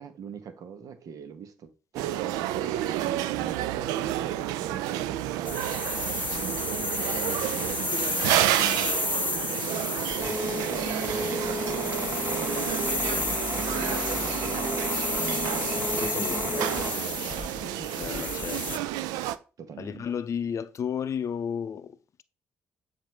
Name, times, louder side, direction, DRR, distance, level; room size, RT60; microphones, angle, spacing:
voice 1, 0.0-8.9 9.3-10.1 10.4-18.0 19.6-20.0, right 6 dB, 65° right, 1.0 m, -42 dB
sound 1, 1.9-19.4, right 14 dB, 85° right, 0.3 m, -30 dB
sound 2, 5.4-18.8, left 3 dB, 30° left, 0.9 m, -32 dB
sound 3, 10.2-16.9, right 2 dB, 40° right, 1.8 m, -32 dB
voice 2, 15.9-16.8 18.0-18.8 19.8-22.2, left 7 dB, 55° left, 0.5 m, -33 dB
7.3 x 2.6 x 5.3 m
hypercardioid pair, 50°, 6 cm